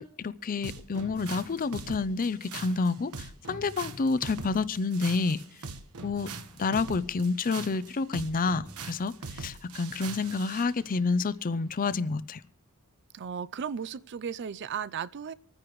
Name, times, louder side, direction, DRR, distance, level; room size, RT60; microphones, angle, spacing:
voice 1, 0.0-5.4 6.0-6.3 6.6-12.4, left 4 dB, 40° left, 0.5 m, -29 dB
sound 1, 0.6-10.7, right 4 dB, 80° right, 1.2 m, -42 dB
voice 2, 13.1-15.3, right 7 dB, 55° right, 0.4 m, -35 dB
26.0 x 9.8 x 3.1 m
head